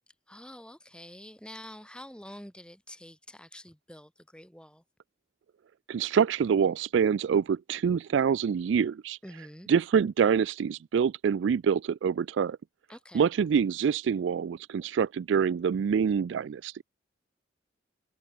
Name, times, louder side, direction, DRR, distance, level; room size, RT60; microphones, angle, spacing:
voice 1, 0.3-4.8 9.2-9.7 12.9-13.3, left 1 dB, 5° left, 4.9 m, -47 dB
voice 2, 5.9-9.2 9.7-12.6 13.1-16.7, right 7 dB, 75° right, 0.3 m, -26 dB
head